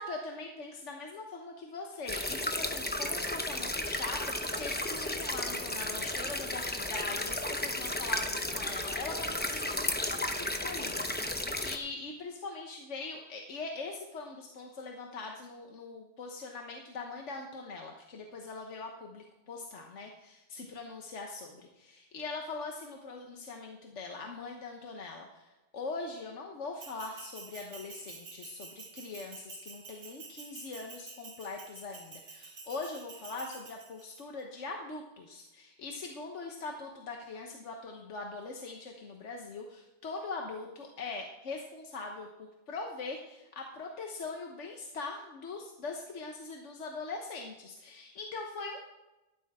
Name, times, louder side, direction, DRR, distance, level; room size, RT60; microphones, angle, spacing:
voice 1, 0.0-48.8, left 3 dB, 80° left, 2 dB, 1.4 m, -42 dB
sound 1, 2.1-11.8, left 1 dB, 10° left, 0.7 m, -34 dB
Bell, 26.8-34.2, right 4 dB, 60° right, 1.4 m, -49 dB
13.5 x 12.0 x 3.6 m, 1.0 s
omnidirectional pair, 1.2 m